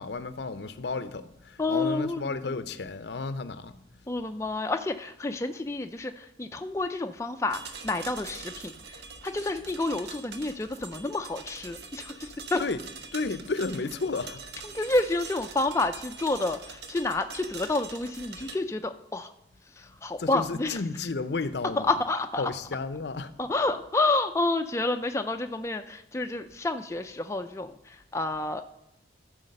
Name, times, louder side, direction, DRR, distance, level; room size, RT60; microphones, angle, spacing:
voice 1, 0.0-3.8 12.6-14.4 20.2-22.0 22.4-23.3, left 3 dB, 65° left, 0.6 m, -32 dB
voice 2, 1.6-2.5 4.1-8.7 9.2-12.6 14.6-19.3 19.8-20.8 21.9-22.5 23.4-27.7 28.1-28.6, left 2 dB, 15° left, 0.4 m, -29 dB
sound 1, 7.5-18.6, right 4 dB, 70° right, 0.9 m, -44 dB
13.0 x 4.9 x 6.5 m
head